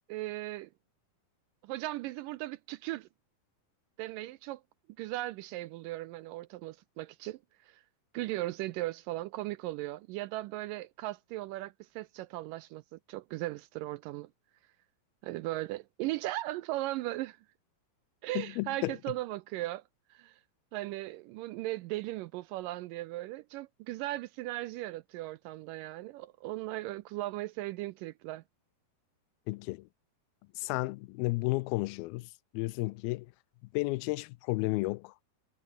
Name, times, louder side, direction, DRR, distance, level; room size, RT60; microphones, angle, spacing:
voice 1, 0.1-0.7 1.6-3.1 4.0-4.6 5.0-7.4 7.7-7.8 8.1-14.3 15.2-17.4 18.2-19.8 20.1-20.4 20.7-28.4, right 17 dB, 80° right, 2.0 m, -37 dB
voice 2, 18.4-19.0 29.5-29.9 30.6-33.3 33.7-35.1, left 23 dB, 85° left, 2.4 m, -33 dB
omnidirectional pair, 4.3 m